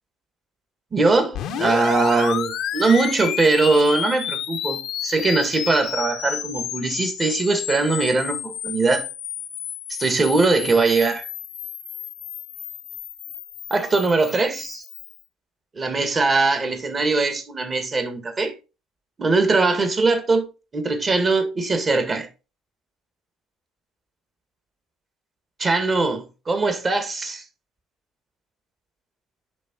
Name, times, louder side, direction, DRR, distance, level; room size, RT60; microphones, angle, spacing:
voice 1, 0.9-9.1 9.9-11.3 13.7-14.8 15.7-18.5 19.2-20.5 20.7-22.3 25.6-27.4, right 3 dB, 35° right, 2.1 m, -21 dB
sound 1, 1.3-15.2, left 10 dB, 60° left, 0.9 m, -31 dB
11.0 x 3.6 x 4.6 m
hypercardioid pair, 55°, 0 cm